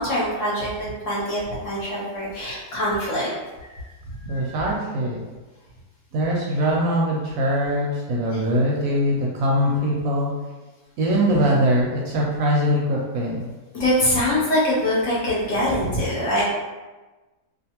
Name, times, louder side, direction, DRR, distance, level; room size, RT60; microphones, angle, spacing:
voice 1, 0.0-3.3 4.2-4.5 13.7-16.4, left 1 dB, 60° left, -6 dB, 1.0 m, -23 dB
voice 2, 4.3-5.2 6.1-10.3 11.0-13.5, equal, 70° right, -3 dB, 0.9 m, -22 dB
2.5 x 2.5 x 2.8 m, 1.2 s
omnidirectional pair, 1.7 m